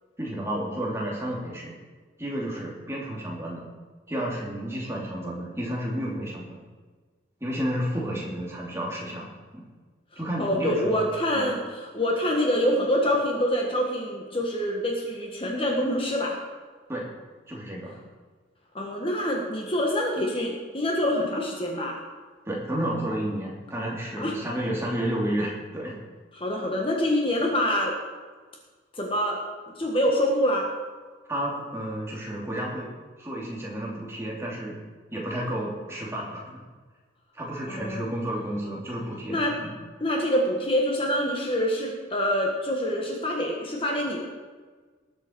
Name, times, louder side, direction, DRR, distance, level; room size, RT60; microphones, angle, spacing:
voice 1, 0.2-1.7 2.2-3.6 4.1-6.6 7.4-9.6 10.2-11.1 11.3-11.5 16.9-17.1 17.5-18.0 22.4-26.0 31.3-32.9 33.2-34.8 35.1-36.5 37.3-39.7, right 1 dB, 15° right, -4 dB, 2.7 m, -31 dB
voice 2, 10.4-16.4 18.7-22.0 24.2-24.3 26.3-27.9 29.0-29.4 29.7-30.7 37.7-38.1 39.3-39.5 40.0-44.3, equal, 25° left, -1 dB, 1.5 m, -26 dB
19.5 x 8.1 x 4.6 m, 1.4 s
head